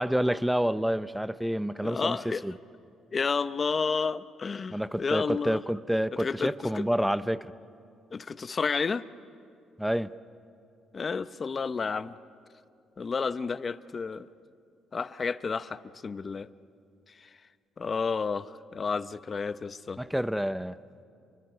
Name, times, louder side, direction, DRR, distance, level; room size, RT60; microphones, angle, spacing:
voice 1, 0.0-2.5 4.7-7.5 9.8-10.1 20.0-20.8, equal, 5° right, 14 dB, 0.7 m, -28 dB
voice 2, 1.8-2.5 3.1-5.6 6.2-6.8 8.1-9.1 10.9-12.2 13.0-14.3 14.9-16.5 17.2-17.3 17.8-20.0, left 5 dB, 40° left, 14 dB, 0.7 m, -31 dB
30.0 x 24.0 x 6.8 m, 2.4 s
cardioid pair, 90°, 0 cm